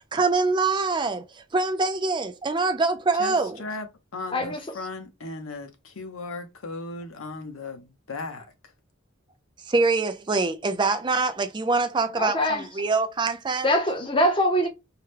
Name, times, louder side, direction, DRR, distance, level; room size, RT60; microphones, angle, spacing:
voice 1, 0.1-1.2 1.5-3.6 9.7-13.7, right 3 dB, 20° right, 0.4 m, -24 dB
voice 2, 3.2-3.9 4.1-8.5, left 3 dB, 85° left, 0.9 m, -36 dB
voice 3, 4.3-4.6 12.2-12.7 13.6-14.7, equal, 25° left, 0.7 m, -23 dB
4.6 x 2.2 x 3.3 m
head